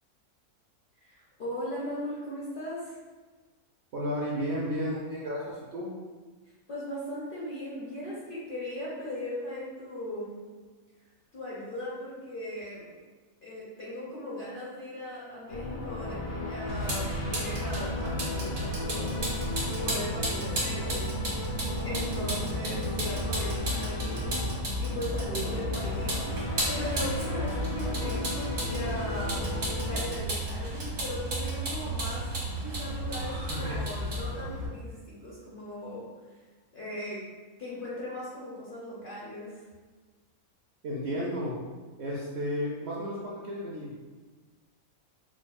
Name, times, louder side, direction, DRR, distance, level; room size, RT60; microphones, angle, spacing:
voice 1, 1.0-3.0 6.7-10.3 11.3-12.9 13.4-19.2 19.8-21.6 21.8-24.4 24.8-29.6 29.9-32.3 32.6-36.1 36.7-37.2 37.6-39.6, equal, 50° left, -7 dB, 0.6 m, -38 dB
voice 2, 3.9-5.9 40.8-41.6 42.0-43.9, equal, 65° right, -5 dB, 0.7 m, -32 dB
sound 1, 15.5-30.0, left 2 dB, 70° left, 1.0 m, -35 dB
Vehicle, 16.7-34.7, equal, 80° right, 1.7 m, -33 dB
4.5 x 2.3 x 2.3 m, 1.3 s
omnidirectional pair, 1.6 m